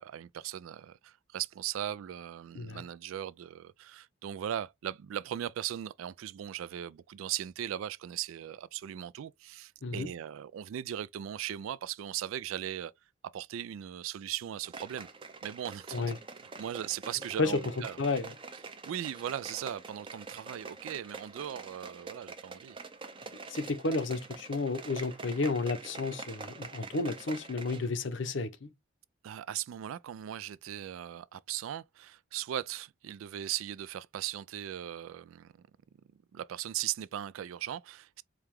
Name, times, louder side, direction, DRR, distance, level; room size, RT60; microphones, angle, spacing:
voice 1, 0.0-12.9 13.3-15.1 15.4-16.1 16.6-18.0 18.8-22.8 29.2-35.7 36.3-38.2, right 11 dB, 80° right, 0.3 m, -38 dB
sound 1, 14.6-27.9 28.2-28.3, right 4 dB, 25° right, 0.5 m, -46 dB
voice 2, 18.0-18.3 23.5-28.7, left 3 dB, 60° left, 0.6 m, -32 dB
4.8 x 2.2 x 3.4 m
head